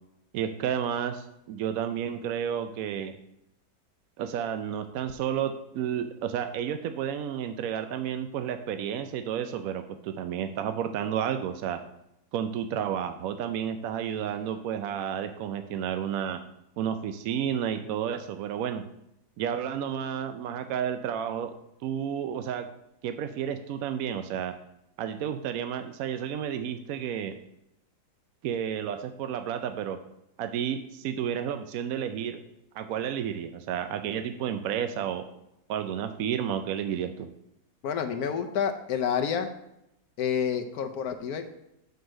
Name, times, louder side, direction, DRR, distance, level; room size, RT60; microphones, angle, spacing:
voice 1, 0.3-3.1 4.2-11.8 12.3-16.4 16.8-18.8 19.4-21.5 21.8-22.7 23.0-24.5 25.0-27.3 28.4-30.0 30.4-32.4 32.7-35.2 35.7-37.3, right 9 dB, 70° right, 8 dB, 0.8 m, -31 dB
voice 2, 37.8-39.5 40.2-41.5, left 7 dB, 70° left, 7 dB, 1.1 m, -29 dB
6.6 x 4.7 x 6.2 m, 0.83 s
omnidirectional pair, 1.9 m